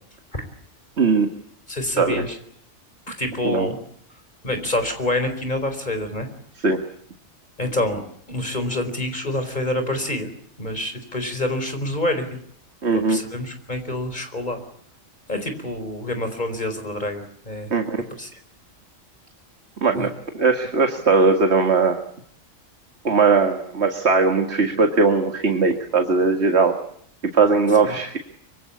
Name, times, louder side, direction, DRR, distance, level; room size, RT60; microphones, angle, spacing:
voice 1, 1.0-1.3 2.0-2.2 3.4-3.7 6.6-6.8 12.8-13.2 17.7-18.0 19.8-22.0 23.0-26.8 27.3-28.2, right 4 dB, 55° right, 5 dB, 2.2 m, -19 dB
voice 2, 1.7-2.4 3.1-3.8 4.4-6.3 7.6-8.0 8.3-10.3 10.6-12.4 12.9-14.6 15.3-17.7 18.2-18.4 19.9-20.1 27.9-28.0, left 1 dB, 35° left, 8 dB, 4.7 m, -27 dB
25.0 x 25.0 x 8.5 m, 0.65 s
omnidirectional pair, 1.4 m